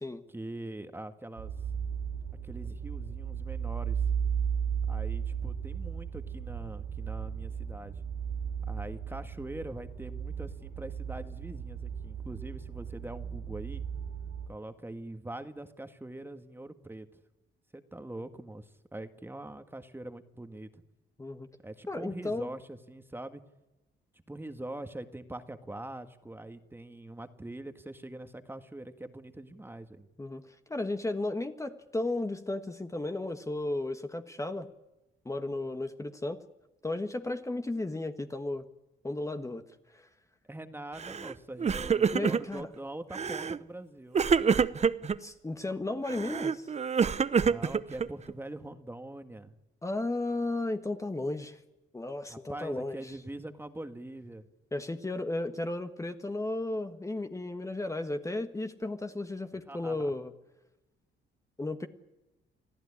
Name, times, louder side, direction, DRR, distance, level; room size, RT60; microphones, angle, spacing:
voice 1, 0.3-1.5 2.4-4.0 4.9-8.0 8.7-13.8 14.5-17.1 17.7-20.8 21.6-23.4 24.1-30.1 40.5-44.2 47.4-49.5 52.3-54.5 59.7-60.1, right 1 dB, 10° right, 9 dB, 1.7 m, -43 dB
sound 1, 1.4-14.5, right 7 dB, 80° right, 5.4 m, -35 dB
voice 2, 21.9-22.5 30.2-34.7 35.2-36.4 36.8-38.6 39.0-39.6 39.9-40.1 42.1-42.7 45.2-46.7 49.8-51.6 51.9-53.2 54.7-60.3 61.6-61.9, left 2 dB, 15° left, 7 dB, 1.4 m, -34 dB
Crying sobbing, 41.0-41.3 41.6-42.6 43.1-43.6 44.1-45.2 46.1-48.3, right 6 dB, 35° right, 0.8 m, -27 dB
26.5 x 15.5 x 9.9 m, 0.98 s
cardioid pair, 90°, 20 cm